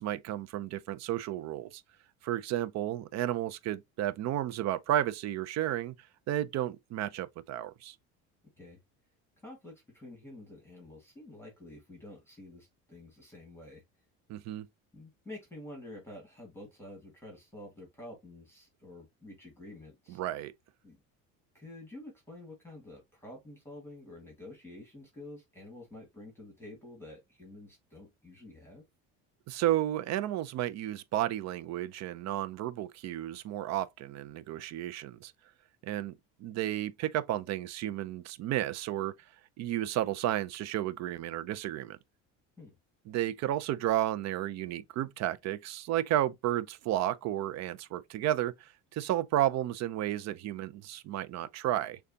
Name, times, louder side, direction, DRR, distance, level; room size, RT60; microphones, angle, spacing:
voice 1, 0.0-1.8 2.2-5.9 6.3-8.0 14.3-14.7 20.1-20.5 29.5-35.3 35.8-36.1 36.4-39.1 39.6-42.0 43.1-52.0, right 13 dB, 55° right, 0.5 m, -32 dB
voice 2, 9.4-13.8 14.9-20.2 20.8-21.0 21.5-28.8 42.6-42.8, left 1 dB, 5° left, 1.8 m, -49 dB
6.4 x 2.3 x 2.7 m
supercardioid pair, 100°, 34 cm